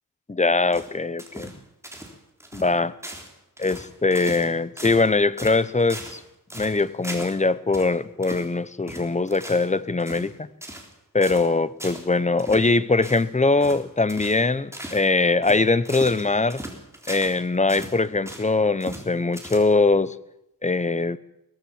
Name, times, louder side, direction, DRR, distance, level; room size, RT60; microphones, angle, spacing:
voice 1, 0.3-1.5 2.5-2.9 3.6-6.2 6.5-10.5 11.1-16.6 17.1-20.1 20.6-21.2, left 3 dB, 20° left, 16 dB, 0.9 m, -22 dB
sound 1, 0.7-1.6 1.8-2.1 2.4-2.7 3.0-3.3 3.6-4.5 4.8-5.1 5.4-6.2 6.5-7.4 7.7-7.9 8.2-8.5 8.9-9.7 10.0-10.3 10.6-10.9 11.2-11.5 11.8-12.1 12.4-12.7 13.0-13.3 13.6-13.8 14.1-14.4 14.7-15.1 15.4-17.4 17.7-18.5 18.8-19.1 19.3-19.9, right 1 dB, 10° right, 4.0 m, -38 dB
23.0 x 18.0 x 7.3 m, 0.83 s
wide cardioid pair, 115°, 33 cm